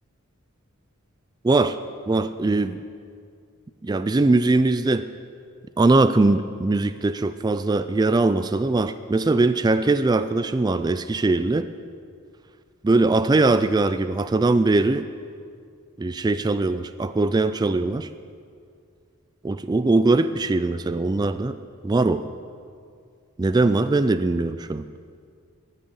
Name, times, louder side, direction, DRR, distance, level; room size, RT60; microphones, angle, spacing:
voice 1, 1.4-1.8 2.1-2.8 3.8-5.0 5.8-11.7 12.8-15.0 16.0-18.1 19.4-21.5 21.8-22.2 23.4-24.8, right 2 dB, 20° right, 11 dB, 0.3 m, -21 dB
14.5 x 6.6 x 9.5 m, 2.2 s
head